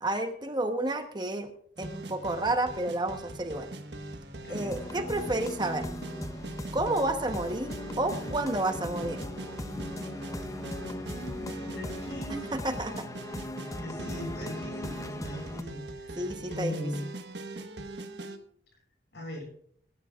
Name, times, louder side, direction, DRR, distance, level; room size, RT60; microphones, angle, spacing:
voice 1, 0.0-1.5 1.8-3.7 4.5-5.9 6.7-9.2 12.5-13.1 16.2-16.7, right 2 dB, 25° right, 6 dB, 1.0 m, -30 dB
sound 1, 1.8-18.4, right 2 dB, 70° right, 1.3 m, -41 dB
voice 2, 4.4-4.8 11.1-12.4 13.8-17.1 19.1-19.5, equal, 65° left, 1 dB, 6.6 m, -39 dB
sound 2, 4.5-15.6, left 1 dB, 20° left, 0.6 m, -39 dB
20.5 x 11.5 x 2.4 m, 0.63 s
head